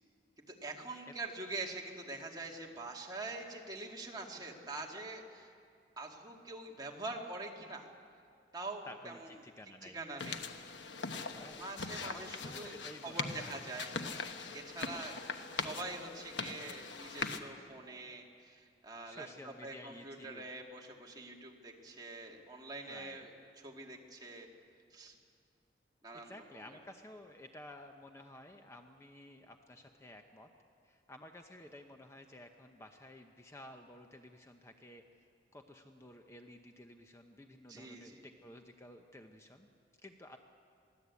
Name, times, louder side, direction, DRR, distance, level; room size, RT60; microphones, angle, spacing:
voice 1, 0.5-5.5 6.0-7.9 8.5-9.3 9.8-10.4 11.6-12.7 13.0-13.9 14.5-23.3 23.6-24.5 24.9-25.2 26.0-26.8 37.7-38.3, right 2 dB, 25° right, 0 dB, 2.1 m, -45 dB
voice 2, 8.8-10.0 11.3-13.6 19.1-20.5 22.9-23.3 26.1-30.5 30.8-35.3 35.5-39.7 40.0-40.4, left 1 dB, 15° left, 5 dB, 0.8 m, -53 dB
sound 1, 10.2-17.4, left 4 dB, 85° left, 1.2 m, -41 dB
22.5 x 16.0 x 8.4 m, 2.3 s
head